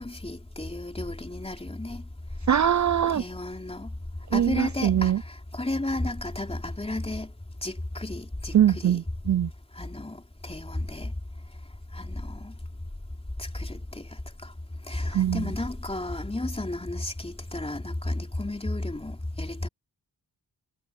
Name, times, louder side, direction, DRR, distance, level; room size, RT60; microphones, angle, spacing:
voice 1, 0.0-2.0 3.1-3.9 4.3-7.3 7.6-9.0 9.7-11.1 11.9-12.5 13.4-14.5 14.9-19.7, left 2 dB, 15° left, 3.5 m, -33 dB
voice 2, 2.5-3.2 4.3-5.2 8.5-9.5 15.1-15.5, right 10 dB, 45° right, 0.5 m, -22 dB
wide cardioid pair, 105°, 40 cm